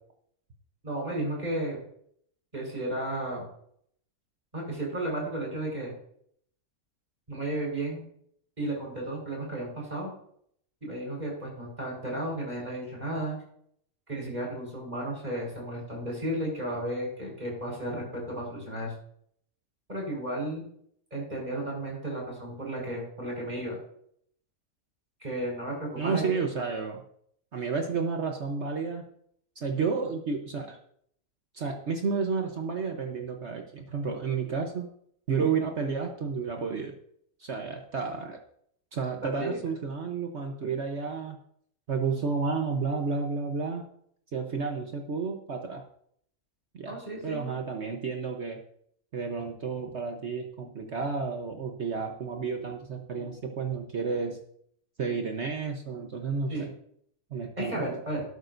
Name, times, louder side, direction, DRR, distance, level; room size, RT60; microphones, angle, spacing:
voice 1, 0.8-1.8 2.5-3.4 4.5-5.9 7.3-8.0 8.6-10.1 10.8-13.4 14.1-18.9 19.9-20.6 21.1-23.8 25.2-26.4 39.2-39.6 46.9-47.6 56.5-56.7 57.6-58.2, right 1 dB, 30° right, -2 dB, 5.0 m, -33 dB
voice 2, 26.0-27.0 27.5-29.0 29.6-30.8 31.5-34.9 35.3-36.9 37.4-38.4 38.9-41.4 41.9-43.8 44.3-45.8 46.7-47.0 47.2-48.6 49.1-54.4 55.0-56.7 57.3-57.8, right 5 dB, 50° right, 3 dB, 1.2 m, -31 dB
12.5 x 12.0 x 2.6 m, 0.66 s
omnidirectional pair, 1.5 m